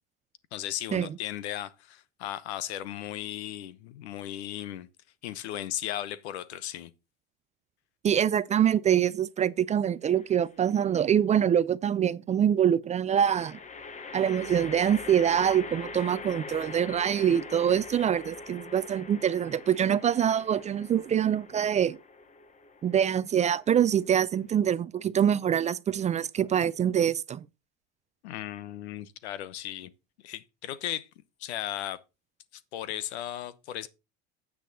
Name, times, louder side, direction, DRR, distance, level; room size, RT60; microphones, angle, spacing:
voice 1, 0.5-4.9 5.2-6.9 28.2-29.9 30.2-31.1 31.4-32.0 32.5-33.9, left 12 dB, 90° left, 1.0 m, -36 dB
voice 2, 8.0-13.6 14.1-22.0 22.8-27.4, right 9 dB, 25° right, 0.4 m, -25 dB
sound 1, 10.0-10.6 13.1-24.5, left 4 dB, 20° left, 1.1 m, -43 dB
9.2 x 7.9 x 3.9 m
supercardioid pair, 115°, 32 cm